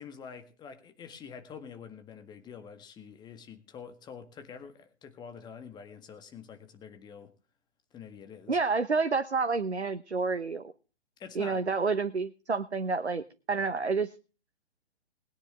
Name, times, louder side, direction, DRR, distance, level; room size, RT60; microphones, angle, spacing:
voice 1, 0.0-7.3 7.9-8.6 11.2-11.6, left 6 dB, 15° left, 1.7 m, -46 dB
voice 2, 8.5-10.7 11.3-14.1, right 4 dB, 80° right, 1.1 m, -29 dB
20.5 x 10.0 x 3.5 m
figure-of-eight pair, 125°, 33 cm